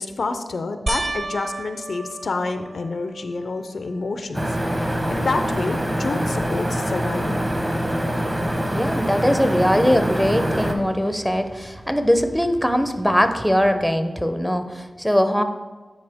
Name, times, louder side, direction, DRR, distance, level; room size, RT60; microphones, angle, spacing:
voice 1, 0.0-4.4 4.9-7.4, left 3 dB, 70° left, 8 dB, 0.5 m, -28 dB
sound 1, 0.9-3.5 4.1-4.6 5.0-5.1 8.3-8.4, right 2 dB, 40° right, 0.3 m, -32 dB
sound 2, 4.3-10.7, equal, 20° right, 1.0 m, -24 dB
sound 3, 4.3-13.7, right 1 dB, 65° right, 1.1 m, -44 dB
voice 2, 8.7-15.4, equal, ahead, 8 dB, 0.6 m, -21 dB
9.5 x 4.3 x 3.5 m, 1.3 s
cardioid pair, 50°, 0 cm